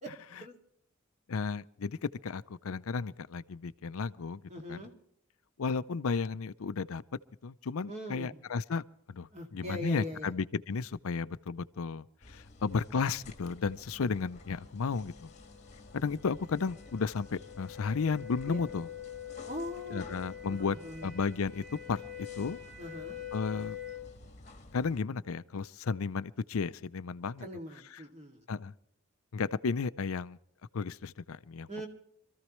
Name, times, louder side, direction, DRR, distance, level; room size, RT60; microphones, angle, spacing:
voice 1, 1.3-4.4 4.7-4.8 5.6-7.0 7.4-8.8 9.1-15.3 15.9-18.9 19.9-20.8 21.0-22.0 22.4-22.6 23.3-23.8 24.7-27.5 27.9-28.0 28.5-28.7 29.3-30.4 30.7-31.7, left 5 dB, 80° left, 0.5 m, -33 dB
voice 2, 4.5-4.9 7.9-8.4 9.3-10.3 18.5-18.8 19.5-21.1 22.8-23.2 27.4-28.4 31.7-31.9, left 1 dB, 30° right, 2.3 m, -42 dB
sound 1, 12.2-25.0, left 2 dB, 35° left, 1.3 m, -53 dB
sound 2, 14.2-24.2, left 11 dB, 45° right, 4.7 m, -46 dB
25.5 x 14.0 x 3.1 m
head